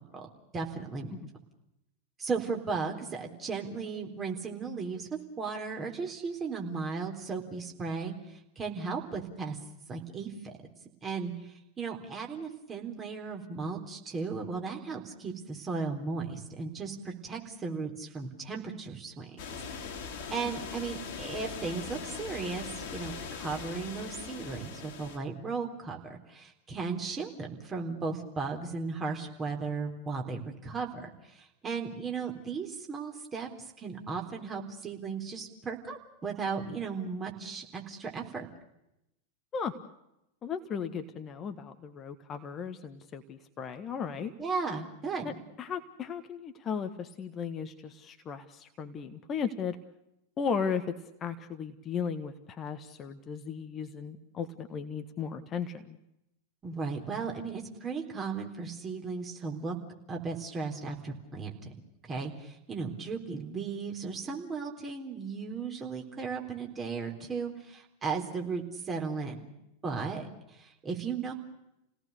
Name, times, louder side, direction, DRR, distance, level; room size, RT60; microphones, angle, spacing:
voice 1, 0.5-1.1 2.2-5.1 5.4-9.6 9.9-10.5 11.0-11.3 11.8-19.6 20.3-33.5 33.8-38.5 44.4-45.3 56.6-59.8 60.1-61.7 62.0-69.4 69.8-71.3, right 4 dB, 20° right, 2 dB, 3.9 m, -36 dB
sound 1, 19.4-25.2, left 6 dB, 45° left, 2.4 m, -41 dB
voice 2, 40.4-44.3 45.2-45.3 45.6-49.8 50.4-50.9 51.2-56.0, left 6 dB, 25° left, 7 dB, 1.5 m, -36 dB
29.5 x 18.0 x 6.8 m, 0.86 s
figure-of-eight pair, 90°, 0 cm